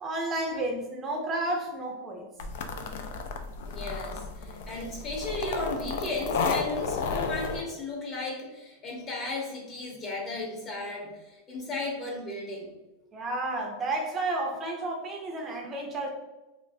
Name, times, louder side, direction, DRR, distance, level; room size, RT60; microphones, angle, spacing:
voice 1, 0.0-2.2 13.1-16.1, right 2 dB, 25° right, 1 dB, 0.5 m, -31 dB
sound 1, 2.4-7.6, left 4 dB, 70° left, 0.4 m, -32 dB
voice 2, 3.6-12.7, left 2 dB, 35° left, -1 dB, 1.0 m, -35 dB
3.2 x 2.4 x 2.5 m, 1.0 s
supercardioid pair, 125°, 0 cm